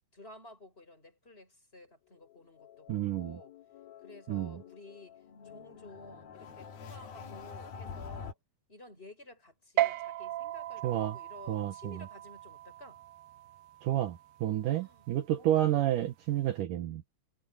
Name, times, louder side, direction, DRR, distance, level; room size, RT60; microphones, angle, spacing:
voice 1, 0.1-3.5 4.0-8.4 8.7-13.0 14.6-15.1 15.4-15.6, left 2 dB, 15° left, 5.8 m, -53 dB
sound 1, 2.2-8.3, left 6 dB, 90° left, 3.9 m, -47 dB
voice 2, 2.9-3.4 4.3-4.6 10.8-11.2 11.5-12.0 13.8-17.0, right 12 dB, 70° right, 2.6 m, -30 dB
sound 2, 9.8-16.6, right 14 dB, 85° right, 2.5 m, -38 dB
omnidirectional pair, 4.1 m